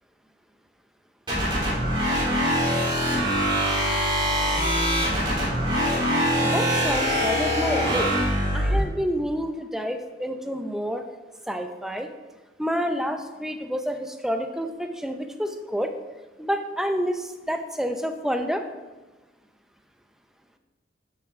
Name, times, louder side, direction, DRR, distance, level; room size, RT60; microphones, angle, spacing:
sound 1, 1.3-8.8, equal, 25° right, 3.3 m, -23 dB
voice 1, 6.4-8.2 8.5-11.0 11.5-12.1 12.6-15.9 16.4-18.6, equal, 5° right, 6 dB, 0.6 m, -28 dB
11.5 x 7.0 x 3.6 m, 1.2 s
head